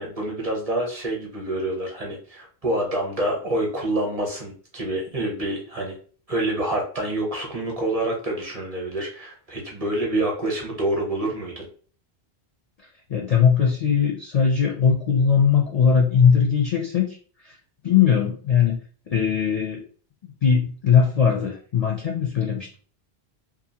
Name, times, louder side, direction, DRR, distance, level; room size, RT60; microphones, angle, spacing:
voice 1, 0.0-5.9 6.3-11.7, right 1 dB, 40° right, -1 dB, 0.8 m, -27 dB
voice 2, 13.1-17.2 17.4-17.5 17.8-18.8 19.1-19.8 20.4-22.7, left 7 dB, 55° left, 0 dB, 0.4 m, -20 dB
2.6 x 2.4 x 2.7 m, 0.42 s
omnidirectional pair, 1.1 m